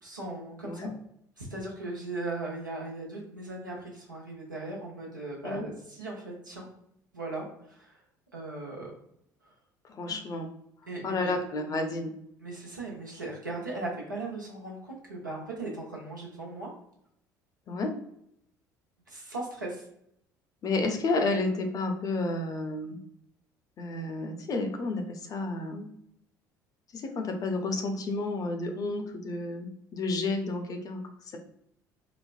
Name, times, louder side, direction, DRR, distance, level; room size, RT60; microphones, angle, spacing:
voice 1, 0.0-0.9 1.4-6.7 7.1-8.0 8.3-8.9 10.9-11.4 12.4-16.7 19.1-19.8, right 2 dB, 85° right, -3 dB, 0.8 m, -38 dB
voice 2, 9.8-10.5 11.0-12.1 17.7-17.9 20.6-23.0 23.8-25.9 26.9-31.4, left 2 dB, 35° left, 4 dB, 0.6 m, -31 dB
4.1 x 2.1 x 2.4 m, 0.74 s
figure-of-eight pair, 60°, 10 cm